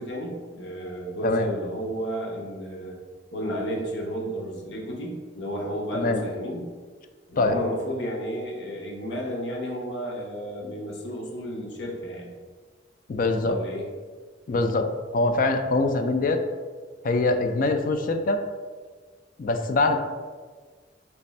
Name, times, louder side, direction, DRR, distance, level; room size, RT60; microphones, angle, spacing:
voice 1, 0.0-3.0 3.3-6.7 7.3-12.3 13.3-13.9 14.5-14.7, equal, 70° left, -1 dB, 1.0 m, -32 dB
voice 2, 13.1-13.6 14.5-14.9 15.1-16.4 17.0-18.4 19.4-20.0, left 2 dB, 50° left, 7 dB, 0.4 m, -23 dB
3.4 x 3.2 x 4.1 m, 1.5 s
head